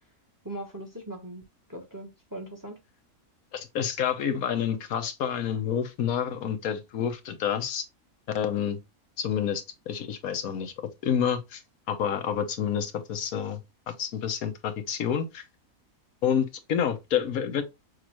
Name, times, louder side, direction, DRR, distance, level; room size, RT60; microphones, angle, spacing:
voice 1, 0.4-1.4 1.7-2.8, right 1 dB, 15° right, 0.9 m, -39 dB
voice 2, 3.5-7.8 8.3-8.8 9.2-10.7 11.0-11.6 11.9-13.6 13.9-15.4 16.2-17.6, left 8 dB, 80° left, 1.3 m, -28 dB
6.3 x 2.5 x 3.0 m
omnidirectional pair, 1.5 m